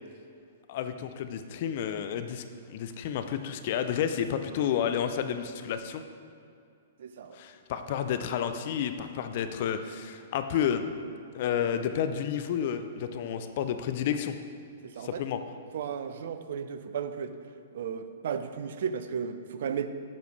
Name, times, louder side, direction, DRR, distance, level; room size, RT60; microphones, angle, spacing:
voice 1, 0.7-6.0 7.3-10.8 11.3-14.4 15.0-15.4, left 8 dB, 50° left, 9 dB, 0.4 m, -31 dB
voice 2, 7.0-7.4 14.8-15.2 15.7-17.4 17.7-19.9, right 7 dB, 55° right, 10 dB, 0.5 m, -34 dB
9.4 x 6.8 x 3.2 m, 2.4 s
figure-of-eight pair, 110°, 0 cm